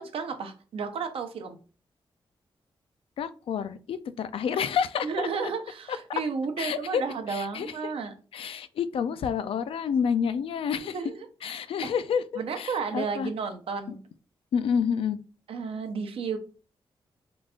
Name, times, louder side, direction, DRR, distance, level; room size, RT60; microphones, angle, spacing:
voice 1, 0.0-1.6 5.0-8.1 10.9-11.5 11.8-11.9 12.4-14.0 15.5-16.4, right 5 dB, 85° right, 7 dB, 0.7 m, -32 dB
voice 2, 3.2-5.3 6.6-7.0 7.3-7.7 8.3-11.0 11.4-12.2 12.6-13.3 13.9-14.0 14.5-15.2, left 7 dB, 80° left, 13 dB, 0.3 m, -29 dB
3.8 x 2.4 x 3.6 m, 0.36 s
cardioid pair, 85°, 9 cm